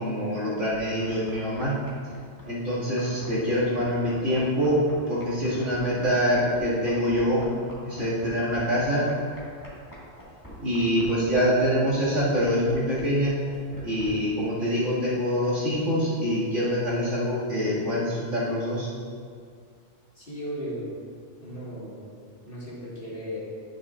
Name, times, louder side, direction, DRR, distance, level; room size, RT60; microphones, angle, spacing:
voice 1, 0.0-1.7 2.4-4.8 5.1-7.4 7.8-9.1 10.6-13.4 13.8-18.9, equal, 75° right, -9 dB, 2.5 m, -25 dB
sound 1, 0.7-14.1, equal, 15° left, 1.7 m, -45 dB
voice 2, 20.2-20.9 21.4-22.0 22.5-23.4, equal, 45° left, -8 dB, 2.2 m, -36 dB
10.5 x 6.4 x 2.4 m, 2.1 s
omnidirectional pair, 1.3 m